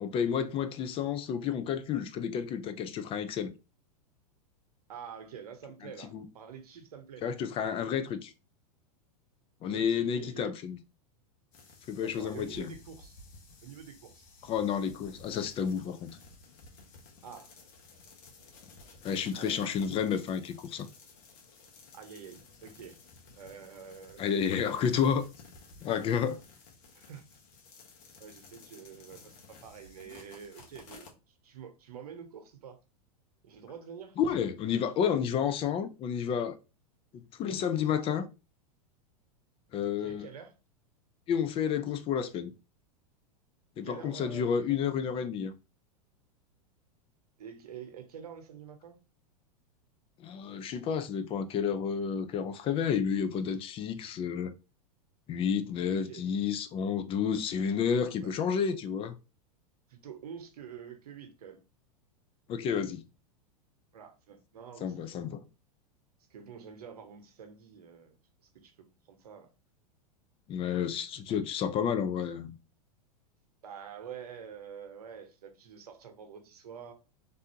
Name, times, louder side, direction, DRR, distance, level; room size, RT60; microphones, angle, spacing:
voice 1, 0.0-3.5 6.1-6.2 7.2-8.3 9.6-10.8 11.9-12.7 14.4-16.2 19.0-20.9 24.2-25.2 25.8-26.4 34.2-36.6 37.1-38.3 39.7-40.3 41.3-42.5 43.8-45.5 50.2-54.5 55.3-59.1 62.5-63.0 64.8-65.5 70.5-72.6, left 7 dB, 30° left, 0.4 m, -30 dB
voice 2, 4.9-7.3 9.7-10.5 12.0-13.2 13.6-14.3 17.2-17.5 19.4-19.7 21.9-23.0 23.4-24.5 26.9-27.2 28.2-32.8 33.4-34.2 40.0-40.5 43.8-44.8 47.4-49.0 55.9-56.2 58.2-58.3 59.9-61.6 63.9-65.0 66.3-68.2 68.4-69.5 73.6-76.9, right 7 dB, 80° right, 0.9 m, -47 dB
sound 1, 11.5-31.1, left 4 dB, 55° left, 1.1 m, -54 dB
3.3 x 2.6 x 2.8 m
hypercardioid pair, 105°, 20 cm